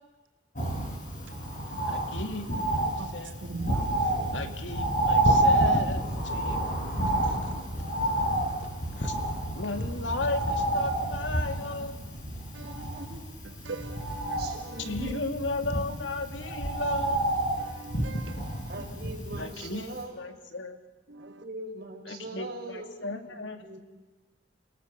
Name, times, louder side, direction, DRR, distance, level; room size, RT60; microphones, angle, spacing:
Bird, 0.6-19.7 20.0-20.1, right 1 dB, 45° left, 6.0 m, -29 dB
voice 1, 1.9-3.4 4.3-6.0 6.3-6.6 7.1-7.4 8.9-9.1 9.6-12.0 14.8-17.2 19.4-20.8 22.1-23.8, left 3 dB, 80° left, 2.3 m, -35 dB
voice 2, 3.4-3.8 13.6-14.8 17.6-18.5 21.1-21.3, right 3 dB, 80° right, 1.3 m, -40 dB
voice 3, 12.6-13.2 14.4-15.4 15.9-16.1 16.8-17.1 18.7-20.4 21.2-22.9 23.4-23.8, right 1 dB, 55° right, 5.4 m, -41 dB
29.0 x 19.0 x 6.4 m
head